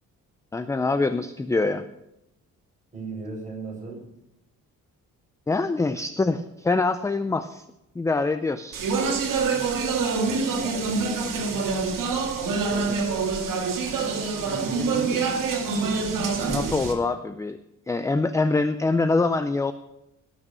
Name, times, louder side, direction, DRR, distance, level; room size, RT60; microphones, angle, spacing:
voice 1, 0.5-1.8 5.5-7.6 8.0-8.8 12.7-13.0 14.5-14.6 14.8-15.5 16.0-16.1 16.4-17.6 17.9-19.7, left 3 dB, 10° left, 11 dB, 0.4 m, -25 dB
voice 2, 2.9-4.0 10.2-11.7, right 3 dB, 25° right, -4 dB, 6.2 m, -38 dB
Speech, 8.7-16.9, right 4 dB, 80° right, 2.2 m, -26 dB
18.0 x 6.3 x 6.7 m, 0.85 s
wide cardioid pair, 155°, 32 cm